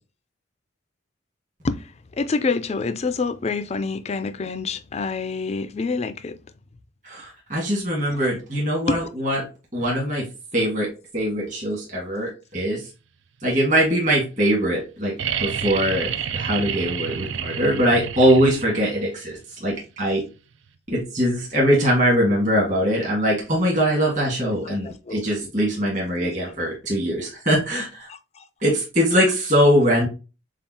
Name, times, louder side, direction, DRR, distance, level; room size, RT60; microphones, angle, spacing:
voice 1, 1.6-6.4 8.1-8.2 8.9-9.0 24.6-25.5 26.2-26.3 28.1-28.4, left 4 dB, 30° left, 0.3 m, -27 dB
voice 2, 7.0-9.5 9.7-10.3 10.5-10.9 11.1-12.8 13.4-15.1 15.4-16.1 16.3-19.3 19.6-20.2 20.9-28.1 28.6-30.1, equal, 40° right, 1.8 m, -22 dB
sound 1, 15.2-19.0 20.7-20.8, right 7 dB, 65° right, 0.4 m, -29 dB
7.1 x 2.4 x 2.8 m
head